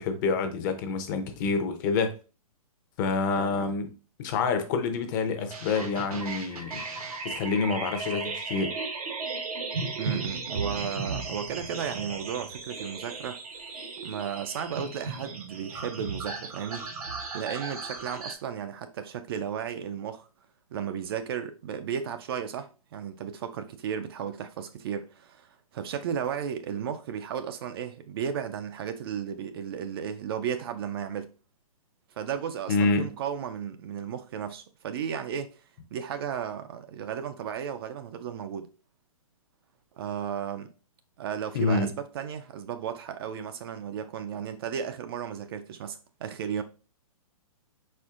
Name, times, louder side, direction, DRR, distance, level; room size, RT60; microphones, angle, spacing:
voice 1, 0.0-2.1 3.0-3.9 4.2-6.8 7.2-8.7 32.7-33.1 41.5-42.0, left 4 dB, 35° left, 0.6 m, -27 dB
voice 2, 3.3-3.7 10.0-13.4 14.0-16.9 17.3-20.3 20.7-31.3 32.2-35.6 35.9-38.7 40.0-40.7 41.2-46.6, right 8 dB, 40° right, 0.4 m, -34 dB
sound 1, 5.5-18.3, right 4 dB, 75° right, 1.1 m, -36 dB
4.3 x 4.3 x 2.4 m
hypercardioid pair, 145°, 19 cm